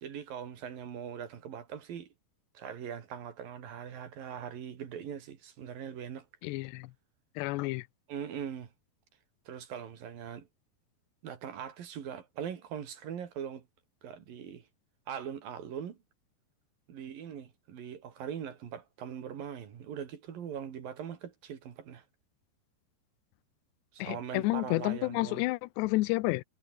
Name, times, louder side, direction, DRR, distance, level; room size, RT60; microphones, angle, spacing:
voice 1, 0.0-2.1 2.6-6.3 8.1-8.7 9.5-10.5 11.2-13.6 14.0-14.7 15.1-16.0 16.9-22.0 23.9-25.4, right 8 dB, 60° right, 3.9 m, -41 dB
voice 2, 6.4-6.9 7.4-7.8 24.0-26.4, left 21 dB, 80° left, 2.9 m, -30 dB
omnidirectional pair, 5.0 m